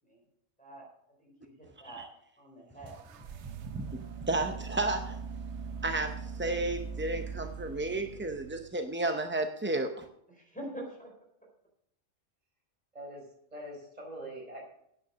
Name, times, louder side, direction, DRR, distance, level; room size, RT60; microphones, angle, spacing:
voice 1, 1.2-2.0 2.4-3.0 10.3-11.1, right 1 dB, 5° left, -3 dB, 4.3 m, -45 dB
sound 1, 2.9-8.8, right 6 dB, 65° right, 1.0 m, -41 dB
voice 2, 3.7-5.2 5.8-10.1, right 2 dB, 15° right, 5 dB, 0.4 m, -32 dB
voice 3, 12.9-14.6, right 1 dB, 35° right, -2 dB, 4.8 m, -44 dB
9.4 x 9.0 x 6.2 m, 0.74 s
omnidirectional pair, 1.3 m